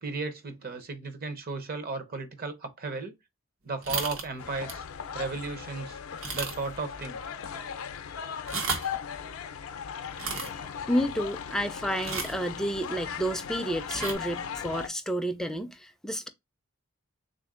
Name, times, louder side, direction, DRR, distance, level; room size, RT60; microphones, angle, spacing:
voice 1, 0.0-3.1 3.6-4.8 5.1-6.0 6.3-7.2, right 3 dB, 45° right, 0.7 m, -35 dB
sound 1, 3.8-4.3 4.7-4.9 5.3-5.4 6.2-6.8 7.1-7.2 8.3-9.0 10.1-10.5 12.0-12.4 13.8-14.1, right 4 dB, 75° right, 0.9 m, -33 dB
sound 2, 4.4-14.9, left 7 dB, 80° left, 0.4 m, -38 dB
voice 2, 10.3-16.3, equal, 5° left, 0.3 m, -31 dB
3.6 x 2.5 x 3.6 m
head